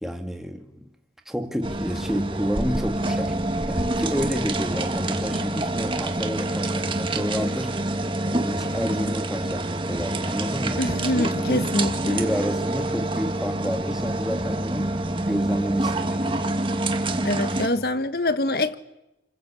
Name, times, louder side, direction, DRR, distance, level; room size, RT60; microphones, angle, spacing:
voice 1, 0.0-0.9 1.3-3.4 3.7-8.0 8.3-10.8 11.1-11.6 12.1-14.9 15.2-16.5, equal, ahead, 2.0 m, -30 dB
sound 1, 1.6-17.7, right 2 dB, 30° right, 1.8 m, -27 dB
voice 2, 10.8-12.2 17.2-18.8, left 2 dB, 55° left, 1.3 m, -25 dB
30.0 x 21.0 x 8.4 m
head